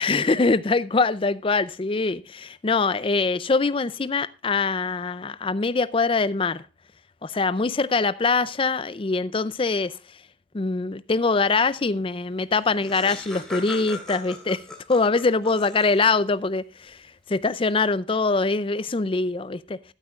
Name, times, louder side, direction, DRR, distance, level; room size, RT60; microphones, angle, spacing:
voice 1, 0.0-6.6 7.2-9.9 10.5-14.6 14.9-17.0 17.3-19.8, left 4 dB, 30° left, 0.4 m, -23 dB
Laughter, 12.2-12.3 12.5-16.2, left 2 dB, 5° left, 2.5 m, -39 dB
13.0 x 12.0 x 2.4 m
head